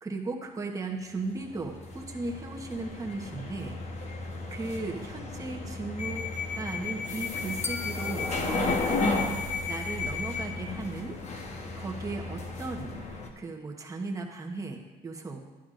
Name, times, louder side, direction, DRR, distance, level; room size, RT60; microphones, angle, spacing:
voice 1, 0.0-3.8 4.0-4.2 4.5-6.2 6.5-9.2 9.6-11.2 11.8-13.0 13.4-15.4, right 3 dB, 20° right, 1 dB, 1.1 m, -36 dB
sound 1, 1.3-13.3, left 3 dB, 40° left, 1.1 m, -33 dB
sound 2, 7.6-9.9, left 4 dB, 15° left, 0.3 m, -42 dB
11.5 x 9.9 x 2.6 m, 1.2 s
cardioid pair, 110°, 17 cm